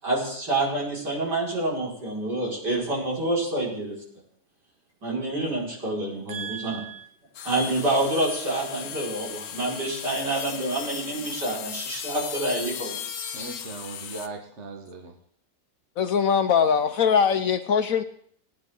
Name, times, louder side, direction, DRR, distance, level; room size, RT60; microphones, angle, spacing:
voice 1, 0.0-3.9 5.0-6.8 7.4-13.0, right 1 dB, 75° right, 5.8 m, -27 dB
voice 2, 6.3-7.1 13.3-15.1, right 5 dB, 45° right, 1.4 m, -38 dB
sound 1, 7.3-14.3, left 9 dB, 90° left, 1.4 m, -37 dB
voice 3, 16.0-18.0, left 7 dB, 65° left, 1.0 m, -21 dB
19.0 x 9.7 x 3.7 m
omnidirectional pair, 1.8 m